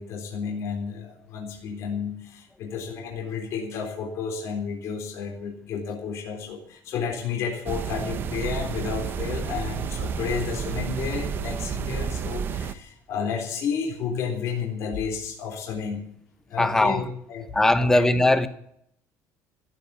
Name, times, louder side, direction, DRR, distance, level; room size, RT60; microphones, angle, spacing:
voice 1, 0.0-16.1 16.5-17.5 17.8-18.1, left 6 dB, 50° left, 3.8 m, -31 dB
sound 1, 7.7-12.8, right 7 dB, 35° right, 0.9 m, -30 dB
voice 2, 16.6-17.0 17.5-18.5, left 1 dB, 5° left, 1.0 m, -19 dB
15.0 x 8.5 x 9.4 m
cardioid pair, 175°, 6 cm